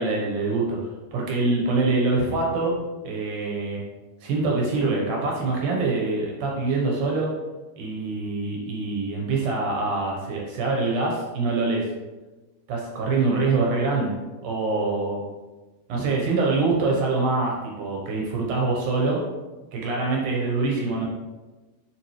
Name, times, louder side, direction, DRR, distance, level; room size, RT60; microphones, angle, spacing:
voice 1, 0.0-2.7 3.0-3.8 4.2-7.3 7.8-11.9 12.7-14.1 14.4-15.3 15.9-19.2 19.7-21.1, right 3 dB, 70° right, -2 dB, 2.2 m, -24 dB
8.9 x 3.6 x 3.1 m, 1.2 s
omnidirectional pair, 4.5 m